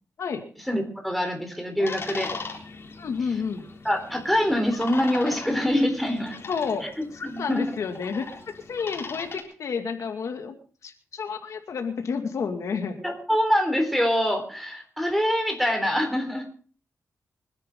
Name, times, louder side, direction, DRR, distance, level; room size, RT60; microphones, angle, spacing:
voice 1, 0.7-2.3 3.8-6.4 6.8-6.9 7.2-7.7 13.0-16.5, equal, ahead, 4 dB, 3.9 m, -25 dB
sound 1, 1.9-9.4, left 4 dB, 50° left, 3.6 m, -39 dB
voice 2, 3.0-3.7 6.5-6.9 7.4-8.3 8.7-10.6 10.8-13.0, left 5 dB, 75° left, 5 dB, 2.2 m, -30 dB
25.5 x 10.5 x 3.7 m, 0.41 s
wide cardioid pair, 115°, 5 cm